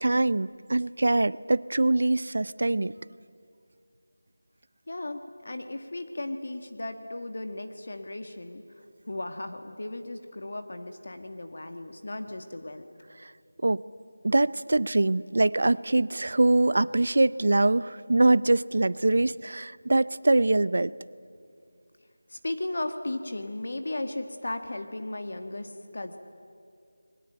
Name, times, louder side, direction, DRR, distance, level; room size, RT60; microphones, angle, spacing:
voice 1, 0.0-2.9 13.6-13.8 14.2-20.9, right 2 dB, 50° right, 19 dB, 0.6 m, -23 dB
voice 2, 4.9-8.6 9.1-12.9 22.3-26.2, left 2 dB, 50° left, 7 dB, 1.6 m, -36 dB
29.5 x 21.5 x 9.1 m, 2.3 s
figure-of-eight pair, 180°, 0 cm